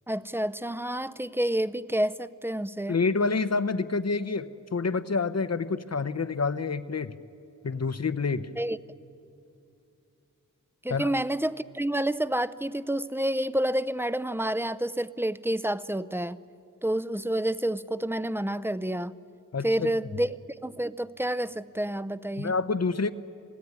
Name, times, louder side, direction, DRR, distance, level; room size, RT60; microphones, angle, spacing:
voice 1, 0.1-3.0 8.6-8.8 10.8-16.4 16.8-19.1 19.6-20.4 20.6-22.5, right 1 dB, 5° right, 15 dB, 0.6 m, -29 dB
voice 2, 2.9-7.2 7.6-8.5 10.9-11.1 19.5-19.9 22.4-23.1, left 4 dB, 50° left, 13 dB, 0.9 m, -28 dB
27.0 x 17.0 x 9.6 m, 2.6 s
wide cardioid pair, 50°, 33 cm